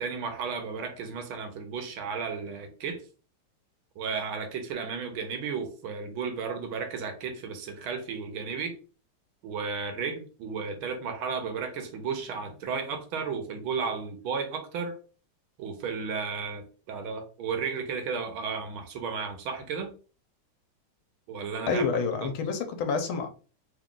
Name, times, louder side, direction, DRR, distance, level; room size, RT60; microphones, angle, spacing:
voice 1, 0.0-3.0 4.0-8.8 9.4-15.0 15.6-19.9 21.3-21.9 22.2-22.3, right 5 dB, 80° right, 1.6 m, -33 dB
voice 2, 21.7-23.3, left 4 dB, 85° left, 1.6 m, -28 dB
3.9 x 2.4 x 3.7 m
omnidirectional pair, 2.2 m